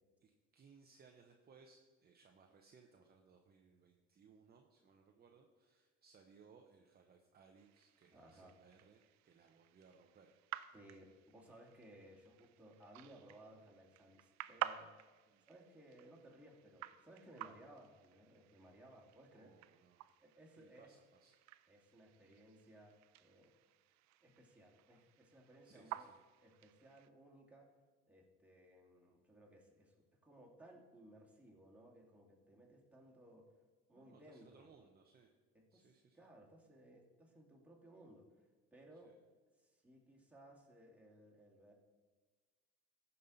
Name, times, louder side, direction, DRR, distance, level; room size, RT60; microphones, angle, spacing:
voice 1, 0.2-10.3 10.6-10.7 15.3-15.5 19.3-20.0 20.5-21.4 25.6-26.2 33.9-35.3 35.7-36.3 38.9-39.2, right 5 dB, 30° right, 2 dB, 0.8 m, -66 dB
sound 1, 7.6-27.1, right 14 dB, 65° right, 0.5 m, -52 dB
voice 2, 8.1-8.6 10.7-14.9 15.5-19.5 20.2-20.9 21.7-23.5 24.2-26.1 26.4-27.7 28.1-30.0 30.2-33.5 33.9-34.9 35.5-35.8 36.1-39.1 39.6-41.7, right 1 dB, 5° right, -2 dB, 2.1 m, -61 dB
14.5 x 5.6 x 4.0 m, 1.4 s
supercardioid pair, 100°, 31 cm